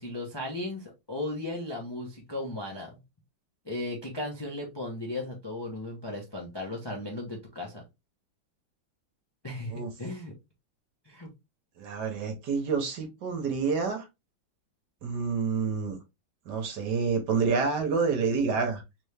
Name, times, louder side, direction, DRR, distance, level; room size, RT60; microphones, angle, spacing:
voice 1, 0.0-3.0 3.6-7.8 9.4-10.3 11.0-11.3, left 1 dB, 25° left, 0.5 m, -36 dB
voice 2, 11.8-14.1 15.0-16.0 16.5-18.8, right 5 dB, 65° right, 1.5 m, -28 dB
3.5 x 3.4 x 3.3 m
omnidirectional pair, 2.2 m